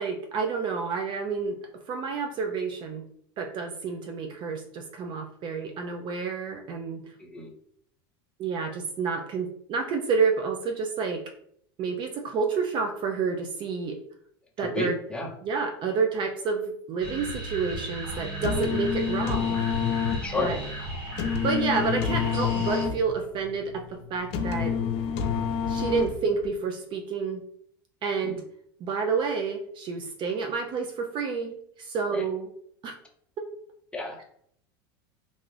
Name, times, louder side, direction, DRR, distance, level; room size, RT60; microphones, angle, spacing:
voice 1, 0.0-3.0 3.4-7.1 8.4-11.2 11.8-14.0 14.6-15.0 15.4-19.6 20.4-20.6 21.4-24.8 25.7-27.4 28.0-28.4 28.8-32.5 32.8-32.9 33.4-33.5, right 5 dB, 40° right, 4 dB, 0.4 m, -29 dB
voice 2, 7.2-7.5 14.7-15.3 20.2-20.5 28.2-28.4 32.1-32.2 33.9-34.2, left 2 dB, 10° left, 0 dB, 0.7 m, -31 dB
sound 1, 17.0-22.9, right 1 dB, 75° right, 1.1 m, -36 dB
sound 2, 18.2-26.5, left 7 dB, 55° left, 0.5 m, -28 dB
2.6 x 2.4 x 3.2 m, 0.67 s
supercardioid pair, 115°, 13 cm